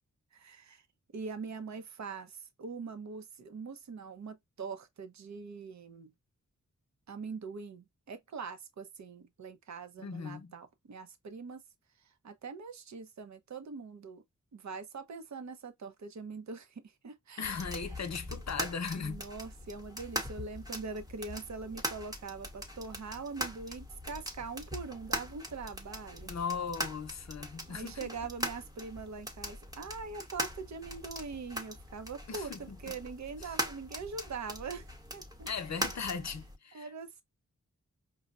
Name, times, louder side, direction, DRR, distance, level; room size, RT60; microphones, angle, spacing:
voice 1, 0.3-0.8 1.1-6.1 7.1-11.6 12.2-14.2 14.5-17.8 19.0-26.3 27.7-35.5 36.7-37.2, right 4 dB, 60° right, 0.7 m, -43 dB
voice 2, 10.0-10.5 17.4-19.2 26.2-28.3 32.3-32.8 33.4-33.5 35.5-36.9, left 5 dB, 55° left, 0.7 m, -38 dB
sound 1, 17.4-36.6, equal, 10° right, 1.0 m, -41 dB
5.3 x 2.1 x 2.4 m
wide cardioid pair, 95°, 32 cm